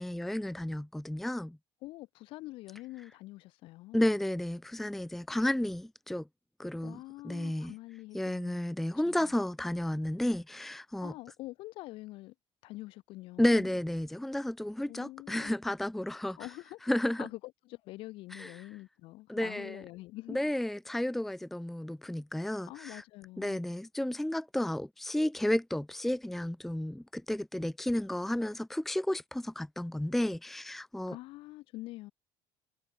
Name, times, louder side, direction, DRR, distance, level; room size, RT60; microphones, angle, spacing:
voice 1, 0.0-1.6 3.9-6.3 6.6-7.7 8.1-11.1 13.4-16.5 16.8-17.3 18.3-18.7 19.3-19.8 20.3-23.0 23.4-31.2, left 1 dB, ahead, 0.8 m, -32 dB
voice 2, 1.8-4.0 6.8-8.6 9.0-9.3 11.0-12.3 12.6-13.7 14.9-15.5 16.4-16.9 17.2-17.4 17.7-20.4 22.7-23.6 31.1-32.1, left 19 dB, 50° left, 3.2 m, -45 dB
cardioid pair, 180°, 11 cm